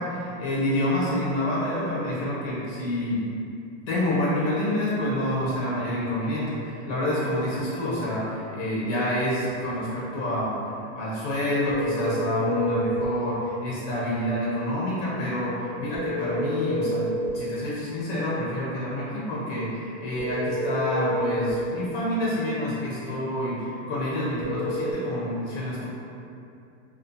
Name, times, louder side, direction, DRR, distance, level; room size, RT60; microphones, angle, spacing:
voice 1, 0.0-3.3 3.9-25.9, left 1 dB, 65° left, -7 dB, 0.8 m, -28 dB
US Dialing Tone, 11.7-13.1 15.9-17.4 20.2-21.6 24.4-24.9, left 1 dB, 35° right, 0.6 m, -28 dB
2.5 x 2.3 x 2.5 m, 2.6 s
supercardioid pair, 165°, 40 cm